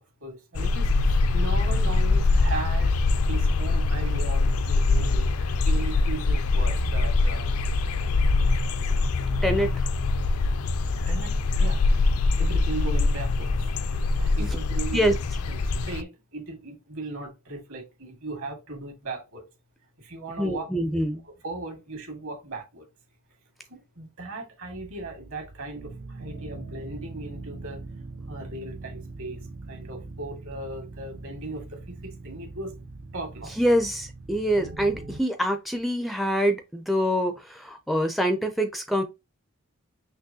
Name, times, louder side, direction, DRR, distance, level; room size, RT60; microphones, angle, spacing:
voice 1, 0.2-2.9 3.2-7.6 8.5-8.6 11.1-11.9 12.4-13.5 14.2-15.1 15.5-19.4 20.0-20.7 21.2-22.9 23.7-27.8 28.3-29.4 29.7-32.8 33.1-33.5, right 2 dB, 65° right, 1.9 m, -37 dB
sound 1, 0.5-16.0, left 3 dB, 75° left, 0.5 m, -23 dB
voice 2, 9.4-9.8 14.4-14.5 14.9-15.1 20.4-21.2 33.6-39.0, equal, ahead, 0.4 m, -25 dB
sound 2, 24.7-35.2, right 3 dB, 50° right, 0.6 m, -41 dB
5.9 x 3.0 x 2.7 m
head